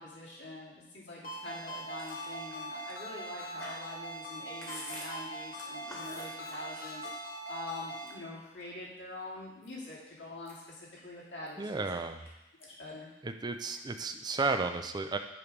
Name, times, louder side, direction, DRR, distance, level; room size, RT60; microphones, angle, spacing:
voice 1, 0.0-12.0 12.8-13.1, left 2 dB, 85° left, -7 dB, 2.6 m, -45 dB
Ringtone, 1.2-8.1, right 1 dB, 55° left, 1.3 m, -42 dB
Chewing mastication, 1.9-7.4 7.8-8.9 9.3-9.9 10.3-12.3 12.6-12.9 13.2-14.0, left 1 dB, 15° left, 1.4 m, -49 dB
voice 2, 11.6-12.2 13.2-15.2, right 3 dB, 25° right, 7 dB, 0.4 m, -33 dB
9.6 x 3.2 x 5.2 m, 0.97 s
head